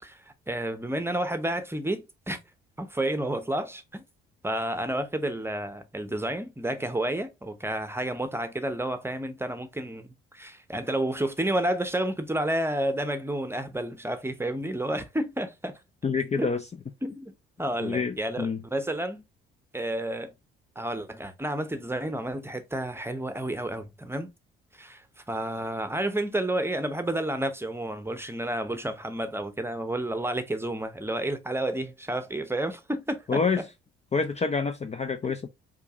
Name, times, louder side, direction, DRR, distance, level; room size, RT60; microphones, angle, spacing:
voice 1, 0.0-2.4 2.8-4.0 4.4-15.8 16.4-16.5 17.0-17.3 17.6-19.2 19.7-20.3 20.8-24.3 24.7-33.6, right 1 dB, 10° right, 0.8 m, -30 dB
voice 2, 16.0-16.6 17.8-18.6 33.3-33.6 34.1-35.5, left 5 dB, 25° left, 0.5 m, -27 dB
4.6 x 2.6 x 2.4 m
hypercardioid pair, 50°, 29 cm